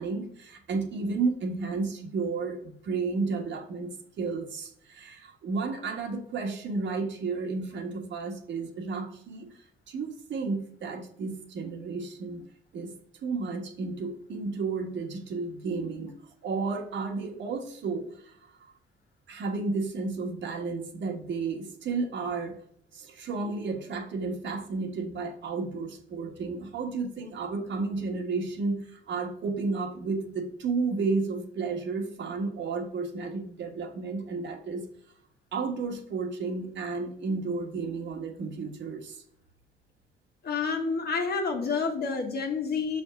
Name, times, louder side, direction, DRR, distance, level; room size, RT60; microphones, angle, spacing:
voice 1, 0.0-9.6 9.9-12.4 12.7-13.0 13.2-18.5 19.3-22.5 22.9-34.8 35.5-39.2, right 4 dB, 65° right, 3 dB, 1.4 m, -32 dB
voice 2, 40.4-43.0, left 5 dB, 55° left, 4 dB, 1.4 m, -29 dB
6.4 x 3.5 x 5.7 m, 0.70 s
cardioid pair, 90°, 20 cm